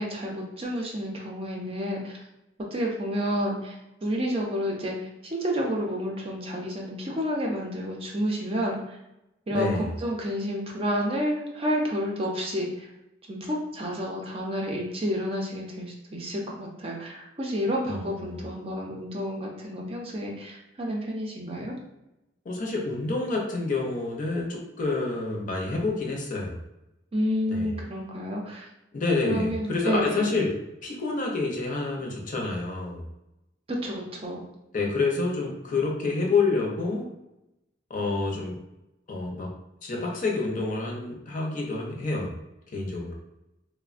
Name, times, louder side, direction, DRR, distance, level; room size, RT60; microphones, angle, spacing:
voice 1, 0.0-2.2 2.7-5.0 5.2-9.0 9.5-12.9 13.3-21.8 27.1-28.7 29.2-30.4 33.7-34.4, equal, 35° right, -1 dB, 0.5 m, -30 dB
voice 2, 9.5-9.9 17.9-18.4 22.4-26.6 27.5-27.7 28.9-30.5 30.8-33.1 34.7-37.1 37.9-38.6 39.1-42.4 42.7-43.1, left 3 dB, 45° left, -1 dB, 0.6 m, -28 dB
3.2 x 2.1 x 2.4 m, 0.91 s
head